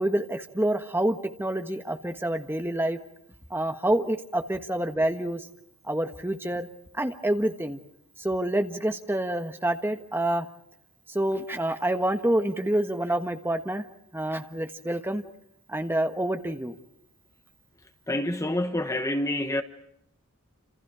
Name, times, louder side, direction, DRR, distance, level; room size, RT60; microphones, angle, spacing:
voice 1, 0.0-3.0 3.5-5.4 5.9-6.7 6.9-7.8 8.2-10.5 11.1-13.8 14.1-15.2 15.7-16.8, right 1 dB, 10° right, 1.4 m, -27 dB
voice 2, 18.1-19.6, left 1 dB, 15° left, 1.0 m, -27 dB
29.5 x 27.5 x 4.9 m
head